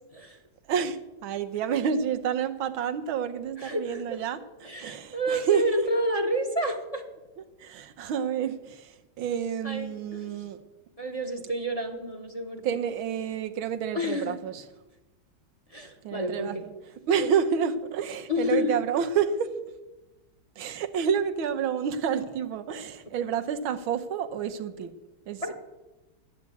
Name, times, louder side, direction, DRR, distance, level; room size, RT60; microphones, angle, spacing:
voice 1, 0.7-5.8 7.6-10.6 12.6-14.6 16.0-16.7 17.1-19.5 20.6-24.9 25.3-25.5, right 7 dB, 90° right, 9 dB, 1.7 m, -29 dB
voice 2, 3.6-4.3 4.6-7.0 9.3-10.5 11.0-12.6 13.9-14.4 15.7-16.6 18.3-18.7 25.4-25.5, equal, 20° left, 4 dB, 1.2 m, -30 dB
12.5 x 9.7 x 8.4 m, 1.1 s
omnidirectional pair, 2.2 m